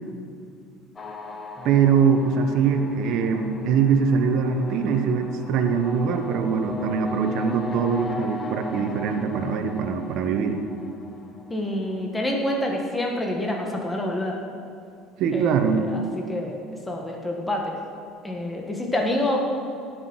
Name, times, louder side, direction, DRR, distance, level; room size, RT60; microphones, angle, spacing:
sound 1, 1.0-12.1, left 2 dB, 30° left, 1.3 m, -37 dB
voice 1, 1.6-10.6 15.2-15.9, right 6 dB, 65° right, 7 dB, 1.1 m, -22 dB
voice 2, 11.5-14.3 15.3-16.0 16.3-16.6 16.9-17.7 18.2-19.4, left 1 dB, 10° left, 0 dB, 1.6 m, -27 dB
18.0 x 6.2 x 6.3 m, 2.4 s
supercardioid pair, 110°, 0 cm